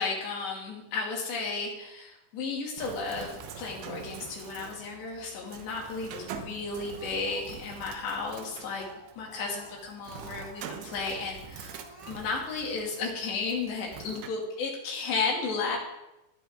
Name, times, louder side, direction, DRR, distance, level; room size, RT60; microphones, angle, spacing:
voice 1, 0.0-8.9 9.2-15.8, left 4 dB, 70° left, -2 dB, 4.8 m, -33 dB
Bird, 2.8-14.3, right 7 dB, 80° right, 3.3 m, -45 dB
Speech, 6.9-8.4 8.6-10.7 11.0-11.4 11.7-12.1, right 1 dB, 20° left, 0.8 m, -50 dB
16.0 x 11.0 x 3.8 m, 0.94 s
omnidirectional pair, 5.3 m